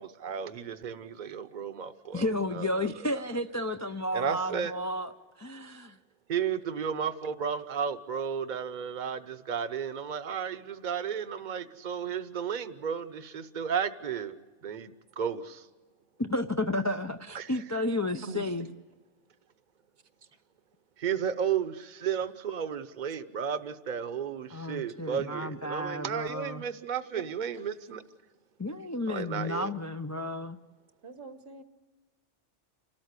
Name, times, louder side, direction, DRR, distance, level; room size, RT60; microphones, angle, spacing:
voice 1, 0.0-3.2 4.1-4.7 6.3-14.4 14.6-15.7 17.3-17.5 21.0-28.0 29.1-29.7, right 7 dB, 45° right, 12 dB, 0.9 m, -33 dB
voice 2, 2.1-6.0 16.2-18.7 24.5-26.6 28.6-30.6, left 1 dB, 25° left, 7 dB, 0.3 m, -32 dB
voice 3, 18.2-18.7 27.1-27.2 31.0-31.6, right 4 dB, 75° right, 9 dB, 1.7 m, -42 dB
28.5 x 13.0 x 8.1 m, 1.3 s
omnidirectional pair, 1.2 m